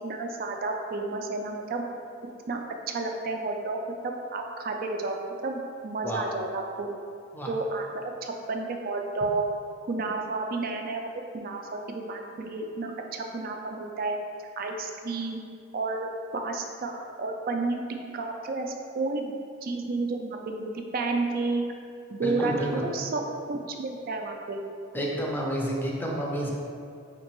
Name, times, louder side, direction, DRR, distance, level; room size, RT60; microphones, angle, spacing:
voice 1, 0.0-1.8 2.5-2.6 2.9-3.8 4.0-6.9 7.5-9.5 9.9-11.1 11.3-14.2 14.6-15.4 15.7-16.1 16.3-17.8 18.1-19.3 19.6-21.6 22.1-24.6, right 3 dB, 50° right, 3 dB, 0.4 m, -31 dB
voice 2, 22.2-22.8 24.9-26.5, equal, 10° left, -3 dB, 0.5 m, -30 dB
5.3 x 2.9 x 3.0 m, 2.3 s
head